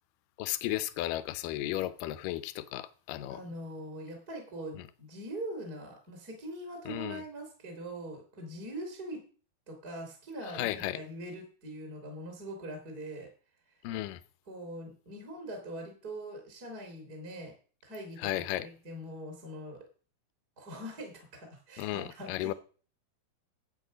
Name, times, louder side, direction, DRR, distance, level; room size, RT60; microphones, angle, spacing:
voice 1, 0.4-3.4 4.8-4.9 6.9-7.2 10.5-11.0 13.8-14.2 18.2-18.7 21.8-22.5, left 15 dB, 75° left, 2.1 m, -34 dB
voice 2, 3.3-9.2 9.7-13.3 14.5-17.5 17.8-18.4 18.8-19.8 20.6-22.5, right 1 dB, 25° right, 2.6 m, -42 dB
12.5 x 8.4 x 5.1 m
omnidirectional pair, 4.5 m